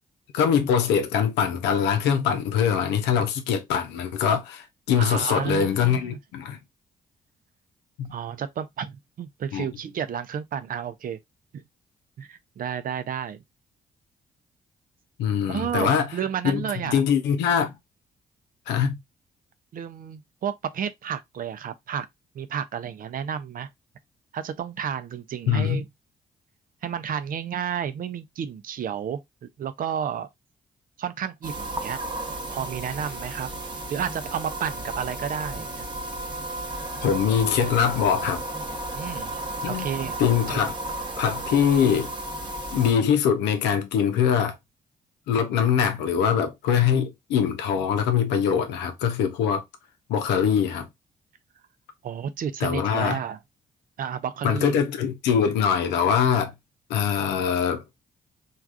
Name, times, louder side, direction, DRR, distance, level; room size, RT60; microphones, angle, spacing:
voice 1, 0.3-6.6 8.0-8.1 9.5-9.7 15.2-16.1 16.4-17.7 18.7-19.0 25.5-25.8 37.0-38.4 39.6-39.9 40.2-40.7 41.2-42.1 42.7-44.6 45.3-49.6 50.1-50.9 52.6-53.2 54.4-56.5 56.9-57.8, left 7 dB, 80° left, 0.6 m, -23 dB
voice 2, 5.0-6.2 8.1-11.2 11.5-11.6 12.2-13.4 15.5-17.0 19.7-22.1 22.3-23.7 24.3-25.9 26.8-30.3 31.0-32.0 32.5-33.5 33.9-35.9 38.9-40.2 40.5-40.6 52.0-53.4 54.0-54.8, right 8 dB, 55° right, 0.5 m, -31 dB
sound 1, 31.4-42.9, right 1 dB, 25° right, 0.9 m, -33 dB
3.3 x 2.4 x 2.4 m
hypercardioid pair, 45°, 18 cm